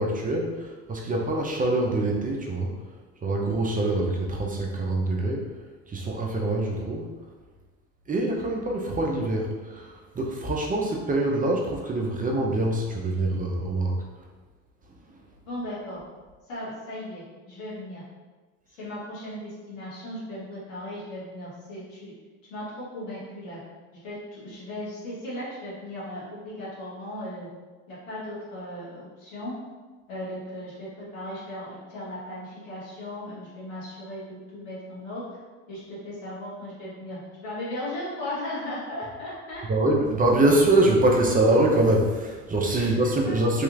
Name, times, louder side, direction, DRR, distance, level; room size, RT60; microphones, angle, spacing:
voice 1, 0.0-2.8 3.2-5.5 5.9-7.2 8.1-14.1 39.7-43.6, right 2 dB, 20° right, -1 dB, 0.6 m, -24 dB
voice 2, 15.4-16.0 16.5-18.0 18.8-22.1 22.5-22.6 22.9-23.6 24.0-27.5 27.9-29.5 30.1-35.4 35.7-39.6 42.7-42.9 43.2-43.4, left 1 dB, 85° left, -8 dB, 1.5 m, -37 dB
3.3 x 3.0 x 2.4 m, 1.3 s
hypercardioid pair, 70°, 37 cm